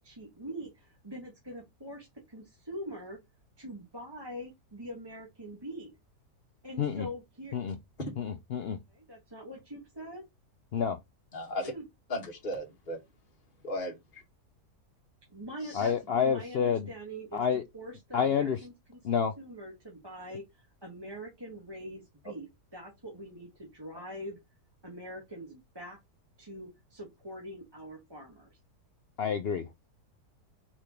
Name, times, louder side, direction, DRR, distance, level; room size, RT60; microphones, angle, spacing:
voice 1, 0.0-3.2 3.6-5.9 6.6-7.5 8.9-10.2 11.6-11.8 15.3-17.4 17.7-19.0 19.4-24.4 24.8-26.0 26.4-28.6, equal, 15° right, 1.6 m, -43 dB
voice 2, 8.2-8.8 10.7-11.0 15.7-16.9 17.3-17.6 18.1-18.6 19.0-19.3 29.2-29.7, left 7 dB, 75° left, 0.5 m, -28 dB
voice 3, 11.3-11.7 12.1-13.0 13.6-14.2 15.6-15.9, left 1 dB, 30° left, 1.9 m, -36 dB
5.0 x 4.4 x 4.5 m
omnidirectional pair, 1.7 m